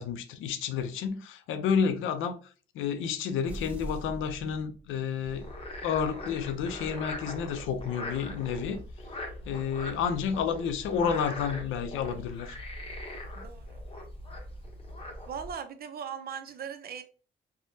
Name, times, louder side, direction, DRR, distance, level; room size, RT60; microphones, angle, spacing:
voice 1, 0.0-2.4 2.7-5.5 5.8-8.8 9.5-12.6, left 7 dB, 80° left, 0.5 m, -30 dB
sound 1, 3.5-5.3, right 1 dB, 5° right, 0.8 m, -41 dB
Frog, 5.2-15.5, left 1 dB, 30° left, 0.8 m, -41 dB
voice 2, 13.3-13.8 15.3-17.0, right 7 dB, 50° right, 0.5 m, -39 dB
3.3 x 2.2 x 2.6 m
cardioid pair, 90°, 20 cm